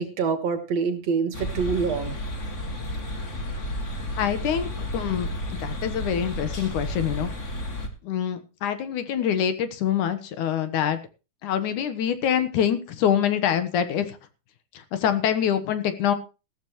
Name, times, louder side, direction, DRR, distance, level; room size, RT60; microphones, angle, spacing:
voice 1, 0.0-2.2, right 5 dB, 60° right, 9 dB, 2.5 m, -26 dB
sound 1, 1.3-7.9, left 1 dB, 30° left, 1.7 m, -32 dB
voice 2, 4.2-7.3 8.0-11.0 11.4-14.2 14.7-16.1, left 9 dB, 75° left, 11 dB, 2.7 m, -25 dB
15.5 x 13.5 x 3.1 m, 0.31 s
omnidirectional pair, 3.7 m